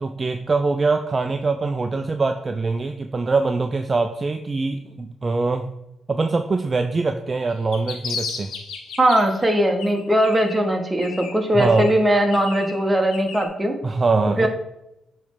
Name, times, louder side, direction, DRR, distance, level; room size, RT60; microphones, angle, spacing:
voice 1, 0.0-5.7 6.1-8.5 11.5-11.9 13.8-14.5, right 3 dB, 35° right, 6 dB, 0.4 m, -23 dB
sound 1, 7.5-9.5 9.8-10.7 11.0-13.5, left 5 dB, 85° left, 0.8 m, -34 dB
voice 2, 9.0-13.8 14.4-14.5, right 1 dB, 15° right, 3 dB, 1.1 m, -19 dB
8.3 x 3.2 x 3.6 m, 0.86 s
cardioid pair, 80°, 0 cm